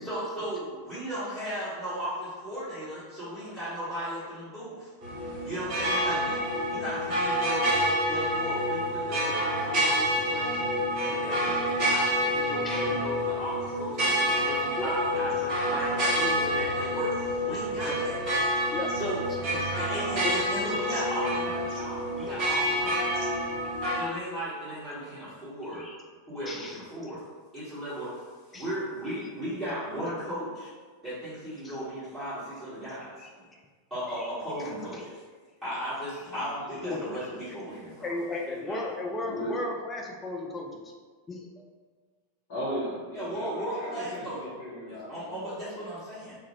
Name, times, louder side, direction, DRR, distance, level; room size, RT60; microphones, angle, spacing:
voice 1, 0.1-4.9 5.4-10.6 11.0-18.2 19.0-19.2 19.7-23.0 23.9-25.8 26.3-27.2 27.5-28.1 28.5-30.7 31.0-33.1 33.9-35.1 35.6-38.2 38.5-38.9 43.1-44.4 44.9-46.4, equal, ahead, -17 dB, 1.2 m, -36 dB
sound 1, 5.0-24.0, equal, 40° right, 1.0 m, -28 dB
voice 2, 12.6-13.0 14.8-14.9 17.5-17.6 17.9-18.0 18.7-18.9 19.5-19.7 20.0-20.3 22.2-22.4 25.7-26.0 26.5-27.1 28.5-28.7 31.6-31.8 33.2-33.3 34.2-34.3 34.9-35.0 36.8-37.0 38.0-40.8 41.3-41.6, left 2 dB, 15° left, 0 dB, 0.4 m, -36 dB
voice 3, 36.2-36.6 39.2-39.5 42.5-45.4, equal, 55° left, -10 dB, 1.0 m, -37 dB
2.4 x 2.2 x 2.9 m, 1.5 s
figure-of-eight pair, 90°, 0 cm